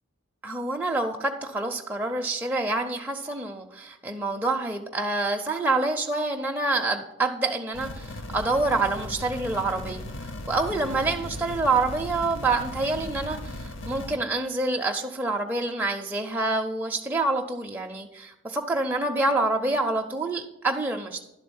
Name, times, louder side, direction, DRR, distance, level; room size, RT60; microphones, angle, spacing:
voice 1, 0.4-21.2, right 2 dB, 10° right, 0 dB, 0.4 m, -27 dB
sound 1, 7.7-14.2, left 1 dB, 60° left, 0.7 m, -37 dB
11.0 x 3.8 x 6.9 m, 0.90 s
head